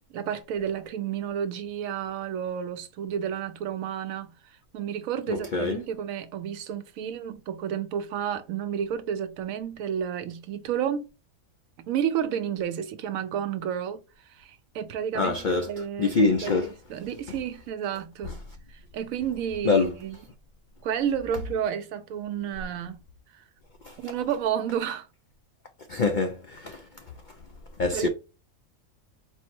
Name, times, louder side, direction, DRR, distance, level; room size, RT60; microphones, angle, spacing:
voice 1, 0.1-11.1 11.9-14.0 14.3-18.4 18.7-20.2 20.8-23.0 23.3-23.4 24.0-25.1 27.9-28.1, right 9 dB, 80° right, 1.0 m, -31 dB
voice 2, 5.3-5.8 15.2-15.7 16.0-16.7 19.6-19.9 23.8-24.0 25.9-26.9 27.8-28.1, left 4 dB, 70° left, 0.4 m, -25 dB
4.4 x 2.0 x 4.3 m
omnidirectional pair, 1.4 m